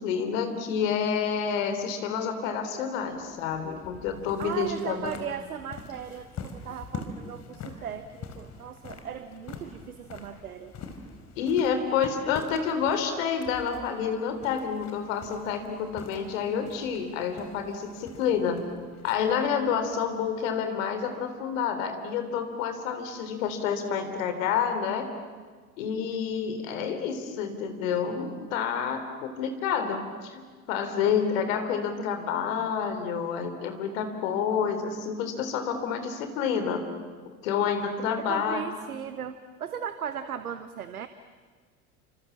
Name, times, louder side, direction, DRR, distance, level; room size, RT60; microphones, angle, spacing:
voice 1, 0.0-5.1 11.4-18.7 19.0-25.1 25.8-30.4 30.7-36.9 37.4-38.6, left 7 dB, 60° left, 7 dB, 3.8 m, -29 dB
sound 1, 3.1-20.7, left 4 dB, 35° left, 3.9 m, -45 dB
voice 2, 4.4-10.7 38.1-41.1, right 8 dB, 75° right, 12 dB, 1.2 m, -37 dB
30.0 x 26.5 x 7.3 m, 1.5 s
figure-of-eight pair, 70°, 44 cm